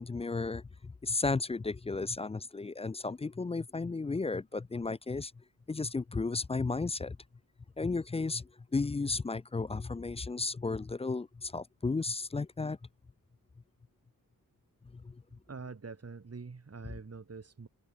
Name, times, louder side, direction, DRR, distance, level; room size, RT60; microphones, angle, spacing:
voice 1, 0.0-5.3 5.7-7.2 7.8-12.8 14.9-15.2, left 3 dB, 20° left, 0.3 m, -34 dB
voice 2, 15.5-17.7, right 4 dB, 40° right, 5.8 m, -45 dB
open air
wide cardioid pair, 130°, 36 cm